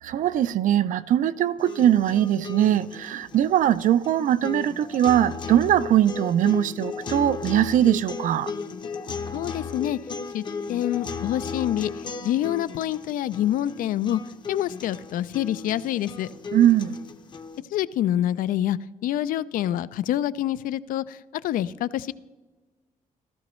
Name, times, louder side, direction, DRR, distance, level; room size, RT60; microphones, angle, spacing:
voice 1, 0.0-8.5 16.5-17.0, right 11 dB, 70° right, 0.4 m, -21 dB
sound 1, 1.6-17.6, left 5 dB, 35° left, 0.7 m, -36 dB
voice 2, 9.3-10.0 10.3-10.4 10.7-11.9 12.2-14.2 14.5-16.3 17.7-21.2 21.4-22.1, left 12 dB, 80° left, 0.4 m, -26 dB
15.0 x 13.5 x 3.1 m
cardioid pair, 150°, 14 cm